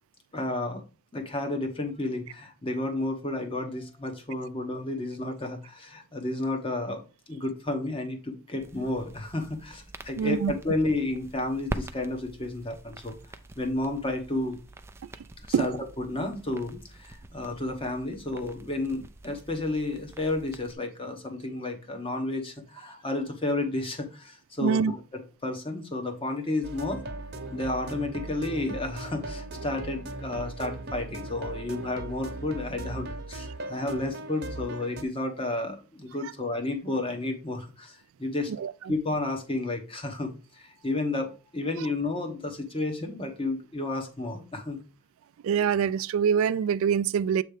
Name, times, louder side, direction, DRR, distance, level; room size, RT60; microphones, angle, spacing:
voice 1, 0.3-0.8 1.1-7.0 7.3-13.1 13.6-14.6 15.6-27.0 27.5-38.5 38.9-44.8, left 2 dB, 25° left, 1.1 m, -31 dB
sound 1, 8.6-20.7, right 1 dB, 10° right, 0.4 m, -44 dB
voice 2, 10.2-10.5 15.5-15.7 24.6-24.9 38.6-38.7 45.4-47.4, right 7 dB, 80° right, 0.3 m, -24 dB
sound 2, 26.6-35.0, right 2 dB, 50° right, 0.9 m, -38 dB
7.6 x 3.2 x 5.0 m
head